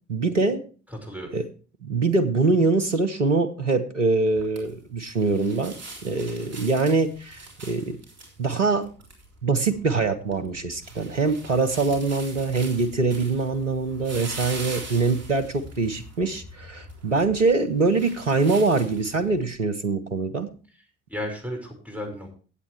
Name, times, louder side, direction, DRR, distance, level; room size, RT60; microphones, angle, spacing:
voice 1, 0.1-0.6 1.3-1.4 1.8-5.7 6.0-8.0 8.4-8.9 9.4-20.5, right 3 dB, 90° right, 7 dB, 0.7 m, -23 dB
voice 2, 0.9-1.3 20.7-20.8 21.1-22.3, equal, 5° right, 2 dB, 5.0 m, -34 dB
sound 1, 4.3-19.4, right 2 dB, 45° right, 3.9 m, -42 dB
16.5 x 8.2 x 3.2 m, 0.38 s
figure-of-eight pair, 45°, 35 cm